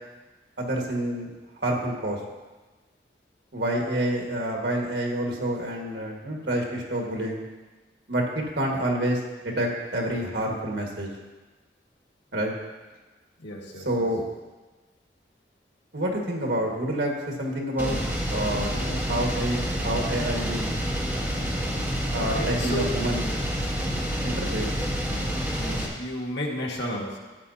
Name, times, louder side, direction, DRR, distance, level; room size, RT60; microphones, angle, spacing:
voice 1, 0.6-1.3 1.6-2.2 3.5-7.4 8.1-9.2 9.4-11.1 12.3-12.5 13.9-14.2 15.9-17.1 17.4-18.0 18.3-20.6 22.1-23.3 24.2-24.7, right 1 dB, 70° right, 0 dB, 1.8 m, -28 dB
voice 2, 13.4-14.1 22.3-22.9 24.5-24.7 25.6-27.2, equal, 80° left, -2 dB, 1.8 m, -32 dB
sound 1, 17.8-25.9, equal, 10° right, 1.4 m, -28 dB
13.0 x 8.8 x 2.8 m, 1.2 s
head